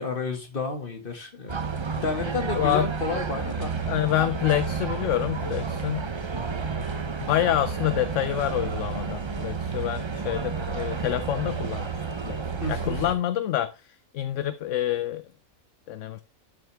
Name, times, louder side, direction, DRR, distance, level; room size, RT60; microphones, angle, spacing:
voice 1, 0.0-3.7 12.6-13.0, left 3 dB, 40° left, 2.0 m, -31 dB
sound 1, 1.5-13.1, right 5 dB, 35° right, 0.5 m, -31 dB
voice 2, 2.5-2.9 3.8-6.1 7.2-12.4 12.7-15.2 15.9-16.2, left 13 dB, 70° left, 0.9 m, -27 dB
12.5 x 6.2 x 3.4 m
omnidirectional pair, 1.4 m